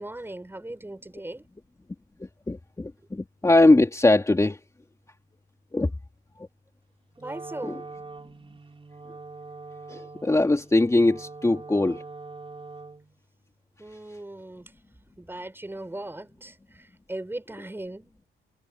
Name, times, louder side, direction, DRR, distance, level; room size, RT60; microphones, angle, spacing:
voice 1, 0.0-1.5 7.2-7.8 13.8-14.7 15.2-18.1, right 1 dB, 10° right, 6.0 m, -38 dB
voice 2, 2.2-4.6 5.7-5.9 7.6-7.8 9.9-12.0, left 2 dB, 15° left, 3.1 m, -21 dB
Wind instrument woodwind instrument, 7.1-13.2, right 3 dB, 25° right, 4.7 m, -43 dB
cardioid pair, 90°, 20 cm